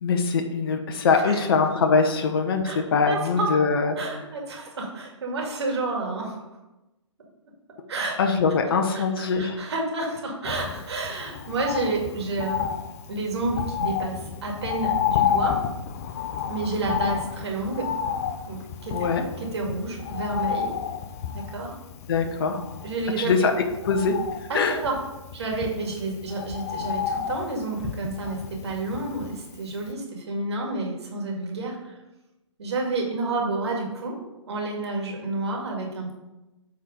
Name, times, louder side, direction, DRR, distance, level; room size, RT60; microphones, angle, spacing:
voice 1, 0.0-4.0 8.2-9.6 18.9-19.2 22.1-22.6 23.2-24.8, left 5 dB, 45° left, 5 dB, 1.0 m, -23 dB
voice 2, 3.1-3.5 4.0-6.6 7.9-8.2 8.9-12.6 13.1-15.6 16.5-17.9 18.5-19.0 19.4-20.7 21.3-21.7 22.8-23.5 24.5-25.0 25.3-32.0 32.6-34.2 34.5-36.1, right 3 dB, 55° right, 0 dB, 2.2 m, -30 dB
Bird, 10.4-29.6 29.9-30.0, left 8 dB, 30° left, 0.5 m, -31 dB
8.6 x 4.0 x 5.3 m, 1.0 s
figure-of-eight pair, 130°, 16 cm